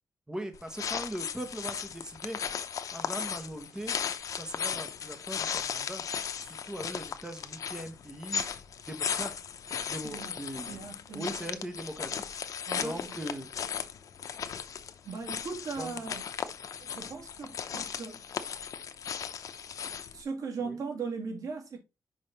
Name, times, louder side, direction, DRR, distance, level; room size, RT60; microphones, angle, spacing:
voice 1, 0.3-2.4 2.9-4.0 4.3-6.0 6.4-8.5 8.9-9.3 9.9-10.8 11.1-12.2 12.8-13.5 15.8-15.9 20.6-20.8, right 1 dB, 10° right, 1.2 m, -40 dB
sound 1, 0.5-20.2, left 7 dB, 75° left, 0.7 m, -36 dB
voice 2, 10.0-10.3 10.7-11.6 12.7-13.3 15.0-16.2 16.8-18.2 20.1-21.8, right 5 dB, 75° right, 2.4 m, -39 dB
5.6 x 5.4 x 4.1 m
wide cardioid pair, 105°, 6 cm